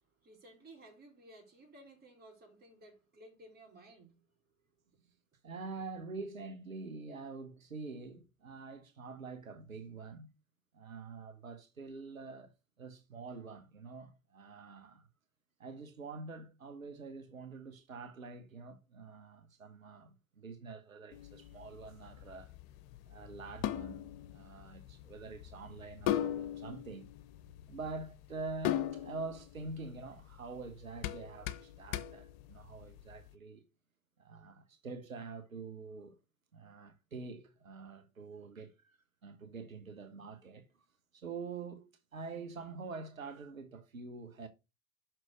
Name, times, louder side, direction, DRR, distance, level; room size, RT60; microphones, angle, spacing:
voice 1, 0.2-4.3, right 1 dB, 25° right, 4.8 m, -56 dB
voice 2, 5.4-10.3 10.7-12.5 12.8-15.1 15.6-22.6 23.1-24.0 24.3-27.1 27.7-33.6 34.2-36.2 36.5-40.7 41.1-44.5, right 4 dB, 90° right, 1.0 m, -46 dB
sound 1, 21.1-33.2, left 12 dB, 50° left, 1.0 m, -40 dB
6.1 x 5.6 x 6.4 m
figure-of-eight pair, 85°, 39 cm